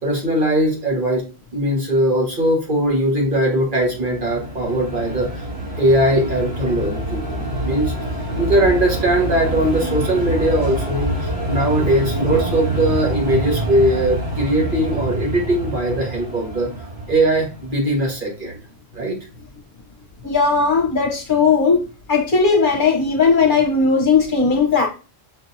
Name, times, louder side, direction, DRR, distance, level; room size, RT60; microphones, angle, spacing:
voice 1, 0.0-1.2 1.5-5.4 5.8-7.9 8.4-16.7 17.1-18.6 18.9-19.2, right 1 dB, 50° right, 1.5 m, -20 dB
sound 1, 3.5-18.0, right 1 dB, 90° right, 2.9 m, -26 dB
voice 2, 20.2-21.8 22.1-24.9, left 5 dB, 55° left, 0.9 m, -17 dB
6.0 x 2.8 x 2.6 m
omnidirectional pair, 1.1 m